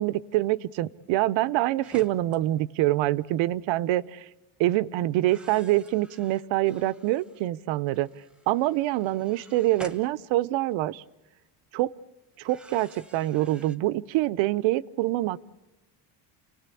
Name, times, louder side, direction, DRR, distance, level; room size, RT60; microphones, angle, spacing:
voice 1, 0.0-4.3 4.6-8.1 8.5-11.0 11.7-11.9 12.4-15.4, right 16 dB, 65° right, 19 dB, 0.9 m, -25 dB
sound 1, 1.8-2.4 3.3-3.6 5.2-7.5 7.9-10.9 12.3-13.8, right 1 dB, ahead, 1.0 m, -50 dB
29.5 x 19.5 x 8.4 m, 1.1 s
cardioid pair, 165°, 50 cm